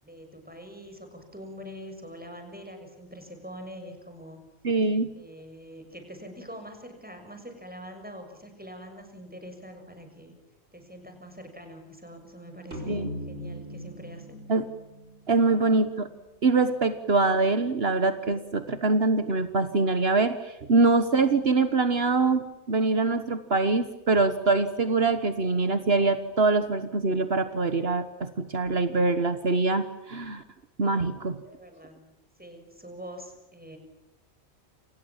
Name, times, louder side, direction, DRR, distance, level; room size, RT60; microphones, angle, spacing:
voice 1, 0.0-4.4 5.1-10.3 10.7-13.0 13.3-14.4 15.3-15.8 31.4-32.1 32.4-33.8, equal, 10° right, 5 dB, 6.7 m, -44 dB
voice 2, 4.6-5.1 12.9-13.1 14.5-14.6 15.3-16.1 16.4-30.4 30.8-31.4, right 3 dB, 65° right, 9 dB, 1.6 m, -24 dB
sound 1, 12.7-16.2, left 1 dB, 90° right, 5.3 m, -40 dB
28.5 x 28.5 x 7.4 m, 0.96 s
omnidirectional pair, 1.1 m